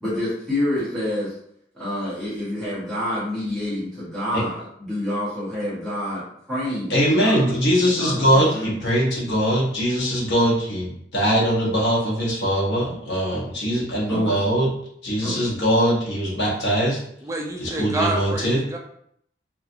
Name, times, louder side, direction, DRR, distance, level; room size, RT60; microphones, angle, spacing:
voice 1, 0.0-1.3 1.7-6.2 6.5-7.4 7.8-8.7 14.1-14.4 15.2-15.4, left 1 dB, ahead, -12 dB, 0.9 m, -28 dB
voice 2, 6.9-14.7 15.0-17.0 17.6-18.6, equal, 75° left, -4 dB, 0.8 m, -21 dB
voice 3, 17.2-18.8, right 2 dB, 15° right, 1 dB, 0.3 m, -28 dB
2.9 x 2.3 x 2.5 m, 0.70 s
head